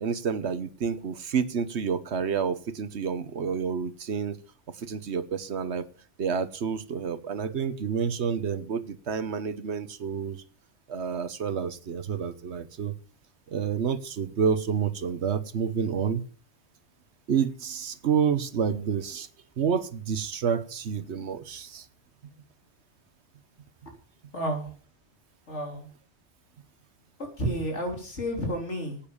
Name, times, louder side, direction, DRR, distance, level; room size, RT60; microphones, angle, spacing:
voice 1, 0.0-4.4 4.8-5.9 6.2-10.4 10.9-12.9 13.5-16.2 17.3-19.3 19.6-21.8, right 6 dB, 70° right, 13 dB, 1.2 m, -29 dB
voice 2, 24.3-24.7 25.5-25.8 27.4-29.0, equal, 75° left, 2 dB, 4.0 m, -31 dB
10.0 x 9.0 x 7.1 m, 0.41 s
omnidirectional pair, 1.2 m